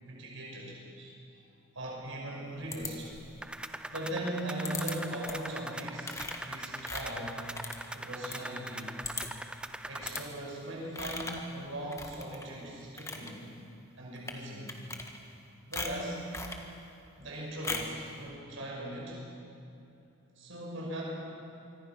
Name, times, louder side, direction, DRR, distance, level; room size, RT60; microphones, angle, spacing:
voice 1, 0.0-1.1 1.7-3.1 3.9-7.5 7.9-9.1 9.9-13.5 14.0-14.7 15.7-16.3 17.2-19.2 20.4-21.0, right 1 dB, 85° right, -3 dB, 5.8 m, -39 dB
sound 1, 2.7-3.4 4.6-4.9 5.3-5.5 6.0-8.4 8.7-8.8 9.0-9.5 10.0-10.2 10.9-11.5 11.9-12.5 12.8-13.3 14.2-14.4 14.7-15.4 15.7-16.6 17.6-18.0, left 3 dB, 15° left, 1.5 m, -39 dB
sound 2, 3.4-10.3, right 1 dB, 5° right, 0.5 m, -42 dB
25.0 x 24.5 x 6.1 m, 2.7 s
head